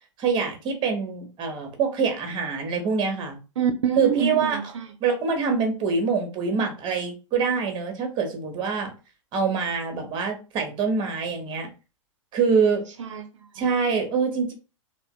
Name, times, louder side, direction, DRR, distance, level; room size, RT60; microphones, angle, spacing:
voice 1, 0.2-3.4 3.9-4.6 5.0-8.9 9.3-11.7 12.3-12.8 13.5-14.5, right 5 dB, 30° right, 0.8 m, -25 dB
voice 2, 3.6-4.9 13.0-13.6, right 7 dB, 65° right, 0.4 m, -27 dB
3.5 x 2.1 x 2.3 m
figure-of-eight pair, 95°, 17 cm